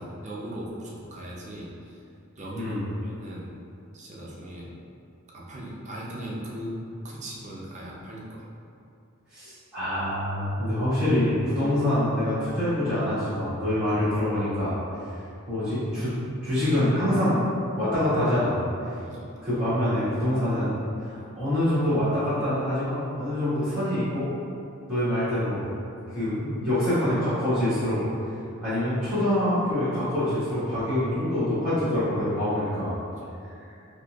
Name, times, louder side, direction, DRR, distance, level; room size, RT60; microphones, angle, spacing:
voice 1, 0.0-2.0 2.4-3.5 3.9-4.7 5.3-6.8 7.0-8.5 19.0-19.3 28.3-28.5 33.2-33.3, right 1 dB, 35° right, -4 dB, 0.5 m, -38 dB
voice 2, 2.5-2.9 9.3-14.8 15.5-17.4 17.8-18.7 19.4-20.7 21.1-24.3 24.9-25.7 26.1-28.0 28.6-33.0, left 1 dB, 5° right, -17 dB, 1.4 m, -25 dB
4.1 x 2.7 x 2.3 m, 2.6 s
head